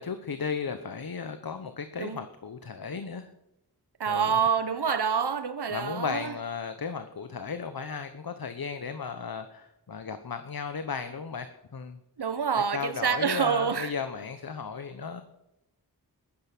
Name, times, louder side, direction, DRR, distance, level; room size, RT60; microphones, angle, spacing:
voice 1, 0.0-3.3 4.1-4.3 5.7-12.0 12.7-15.2, left 5 dB, 65° left, 1.0 m, -35 dB
voice 2, 4.0-6.3 12.2-13.9, right 7 dB, 90° right, 1.1 m, -27 dB
14.5 x 11.5 x 6.1 m
wide cardioid pair, 65°, 39 cm